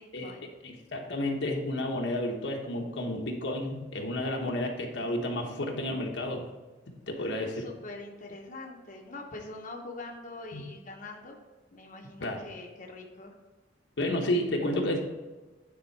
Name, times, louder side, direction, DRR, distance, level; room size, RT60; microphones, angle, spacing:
voice 1, 0.0-0.5 7.2-11.4 11.7-13.3, left 2 dB, 45° left, 0 dB, 0.9 m, -44 dB
voice 2, 0.6-6.4 7.1-7.6 10.5-10.6 12.2-12.4 14.0-15.0, left 1 dB, 80° left, 1 dB, 1.1 m, -31 dB
9.7 x 3.9 x 4.6 m, 1.2 s
head